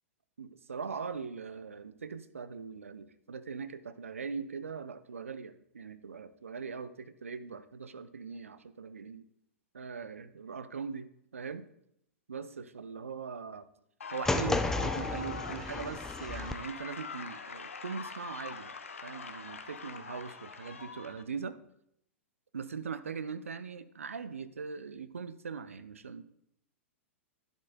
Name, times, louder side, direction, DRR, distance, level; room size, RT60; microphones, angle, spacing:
voice 1, 0.4-9.3 9.7-11.7 12.3-13.7 14.1-18.7 19.0-21.6 22.5-26.2, right 5 dB, 80° right, 13 dB, 0.6 m, -41 dB
sound 1, 14.0-21.2, left 5 dB, 80° left, 1.0 m, -43 dB
sound 2, 14.3-16.5, left 2 dB, 5° left, 0.4 m, -32 dB
11.5 x 11.0 x 2.2 m, 0.75 s
figure-of-eight pair, 100°, 7 cm